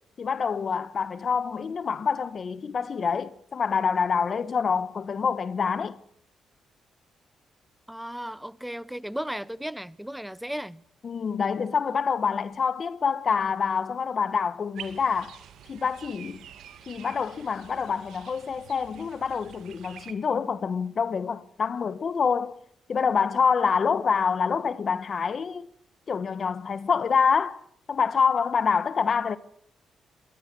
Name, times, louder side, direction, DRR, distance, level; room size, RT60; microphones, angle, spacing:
voice 1, 0.2-6.0 11.0-15.4 15.7-16.4 16.9-22.6 22.9-25.7 26.1-27.6 27.9-29.4, left 6 dB, 45° left, 1.2 m, -26 dB
voice 2, 7.9-10.8, equal, 5° right, 0.7 m, -35 dB
sound 1, 14.7-20.1, right 10 dB, 80° right, 2.2 m, -47 dB
23.0 x 19.0 x 6.1 m
cardioid pair, 90°, 0 cm